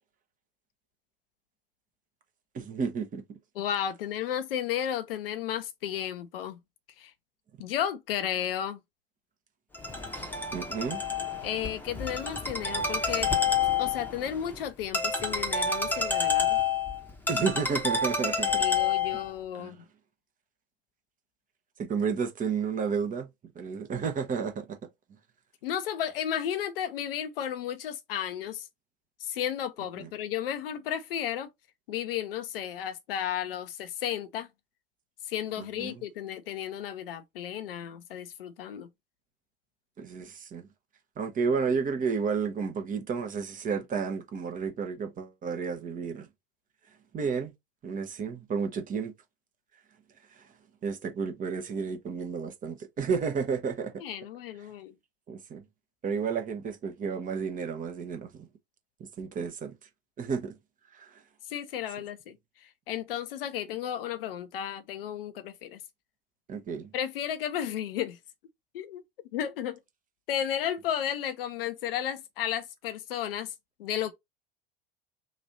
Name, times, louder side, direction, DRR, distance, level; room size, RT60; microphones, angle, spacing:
voice 1, 2.5-3.2 10.5-11.0 17.3-18.7 19.6-19.8 21.8-23.3 23.5-24.8 30.0-30.1 35.8-36.0 40.0-40.7 41.2-46.3 47.1-47.5 47.8-49.1 50.8-54.0 55.3-55.6 56.0-58.4 59.0-59.7 60.2-60.5 60.9-61.2 66.5-66.9, right 5 dB, 25° right, 0.9 m, -31 dB
voice 2, 3.6-6.6 7.0-7.1 7.6-8.8 11.4-13.3 13.8-16.6 18.6-19.8 25.6-28.7 29.2-31.5 31.9-34.5 35.3-38.9 54.0-54.9 61.5-62.4 62.9-65.8 66.9-68.2 68.7-69.0 69.3-69.8 70.3-73.5 73.8-74.1, left 10 dB, 65° left, 0.7 m, -33 dB
Ringtone, 9.7-19.3, left 5 dB, 5° left, 1.0 m, -29 dB
3.1 x 2.5 x 3.9 m
figure-of-eight pair, 75°, 31 cm